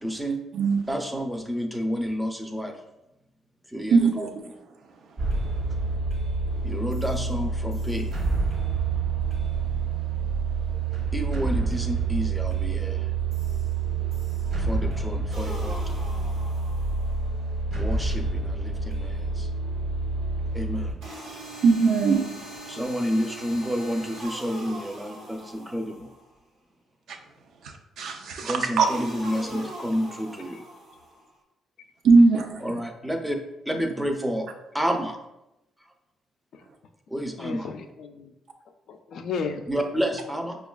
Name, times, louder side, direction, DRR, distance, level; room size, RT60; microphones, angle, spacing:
voice 1, 0.0-0.4 0.9-2.7 3.7-4.3 6.6-8.1 11.1-13.1 14.5-16.0 17.8-19.5 20.5-21.0 22.7-26.1 28.4-30.6 32.6-33.4 33.7-34.5 34.7-35.2 37.1-37.7 39.7-40.6, equal, 5° right, 0.5 m, -30 dB
voice 2, 0.5-0.9 3.9-4.6 21.6-22.5 27.1-27.2 27.6-28.9 32.0-32.6, right 4 dB, 70° right, 0.5 m, -21 dB
sound 1, 5.2-20.9, right 4 dB, 50° right, 0.9 m, -28 dB
sound 2, 15.3-17.3 21.0-26.3 28.9-31.3, right 1 dB, 90° right, 1.0 m, -41 dB
voice 3, 37.4-38.3 38.9-39.7, left 5 dB, 70° left, 0.3 m, -34 dB
5.1 x 2.3 x 2.2 m
cardioid pair, 90°, 0 cm